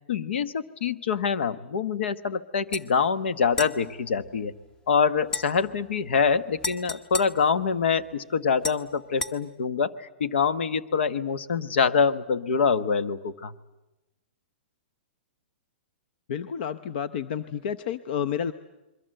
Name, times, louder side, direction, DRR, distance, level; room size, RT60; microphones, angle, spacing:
voice 1, 0.1-4.5 4.9-13.5, left 6 dB, 75° left, 13 dB, 1.3 m, -25 dB
sound 1, 2.7-2.9 3.5-4.8 5.3-8.1 8.6-9.4, left 2 dB, 15° left, 1.1 m, -36 dB
voice 2, 16.3-18.5, left 8 dB, 55° left, 12 dB, 0.8 m, -30 dB
28.0 x 22.5 x 7.8 m, 0.99 s
hypercardioid pair, 145°, 6 cm